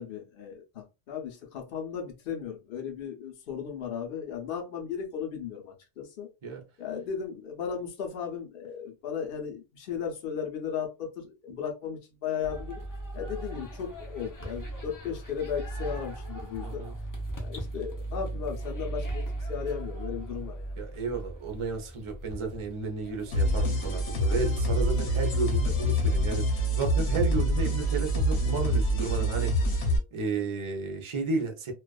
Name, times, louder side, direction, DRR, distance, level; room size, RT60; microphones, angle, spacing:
voice 1, 0.0-6.3 6.8-12.8 13.1-16.8 17.4-19.2 19.5-20.7, left 7 dB, 60° left, 0.8 m, -36 dB
sound 1, 12.4-24.6, right 1 dB, 30° left, 0.4 m, -38 dB
voice 2, 16.6-16.9 20.8-29.8 30.1-31.7, right 4 dB, 40° right, 0.5 m, -33 dB
sound 2, 23.3-30.0, equal, 90° left, 1.1 m, -26 dB
2.4 x 2.3 x 2.2 m
omnidirectional pair, 1.1 m